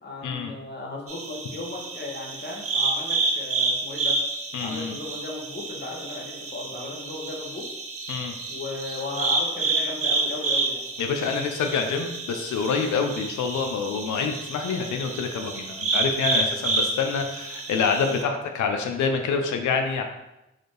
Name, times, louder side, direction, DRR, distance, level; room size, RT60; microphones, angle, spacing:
voice 1, 0.0-4.2 4.6-7.6 8.5-10.9, left 2 dB, 35° left, -2 dB, 1.2 m, -36 dB
sound 1, 1.1-18.2, right 3 dB, 50° right, 0.7 m, -29 dB
voice 2, 4.5-5.0 8.1-8.4 11.0-20.0, left 5 dB, 85° left, 5 dB, 0.5 m, -27 dB
4.0 x 2.6 x 3.2 m, 0.93 s
supercardioid pair, 40°, 29 cm